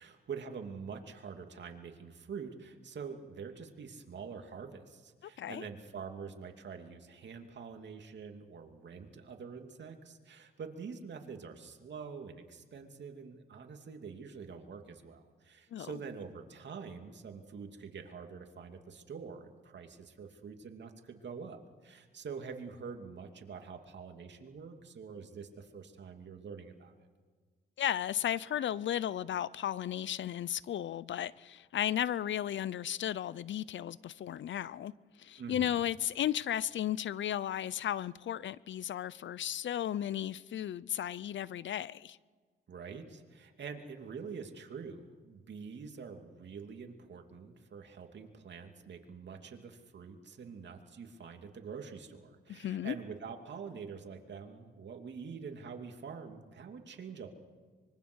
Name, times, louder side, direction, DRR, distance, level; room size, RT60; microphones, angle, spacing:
voice 1, 0.0-27.1 35.4-35.8 42.7-57.3, right 5 dB, 65° right, 2.8 m, -46 dB
voice 2, 5.2-5.6 15.7-15.9 27.8-34.9 35.2-42.2 52.5-53.0, left 11 dB, 70° left, 0.6 m, -34 dB
25.0 x 23.0 x 6.4 m
cardioid pair, 80°, 20 cm